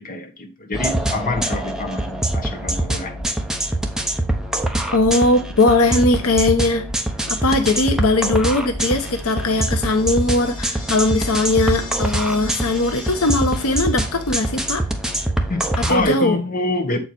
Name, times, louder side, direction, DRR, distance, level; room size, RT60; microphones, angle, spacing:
voice 1, 0.0-3.4 15.5-17.0, left 2 dB, 40° left, 5 dB, 1.3 m, -26 dB
sound 1, 0.7-16.0, right 1 dB, 5° right, 0.9 m, -24 dB
voice 2, 4.9-6.9 7.3-14.8 15.8-16.4, left 2 dB, 70° left, 7 dB, 0.9 m, -19 dB
sound 2, 9.4-14.8, left 2 dB, 20° left, 2.4 m, -39 dB
7.9 x 4.8 x 4.3 m, 0.32 s
head